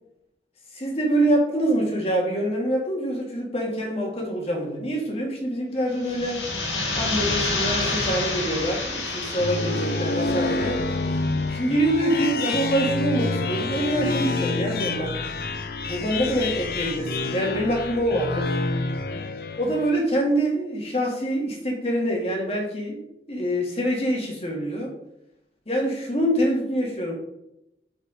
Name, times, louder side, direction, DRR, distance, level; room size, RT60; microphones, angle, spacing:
voice 1, 0.7-6.4 7.0-10.8 11.5-15.2 15.9-18.5 19.6-25.0 25.7-27.1, right 1 dB, 35° left, -1 dB, 2.3 m, -25 dB
sound 1, 5.9-11.6, left 3 dB, 85° left, 2.0 m, -29 dB
sound 2, 9.1-20.0, left 3 dB, 55° left, 0.6 m, -28 dB
8.3 x 5.2 x 5.2 m, 0.84 s
head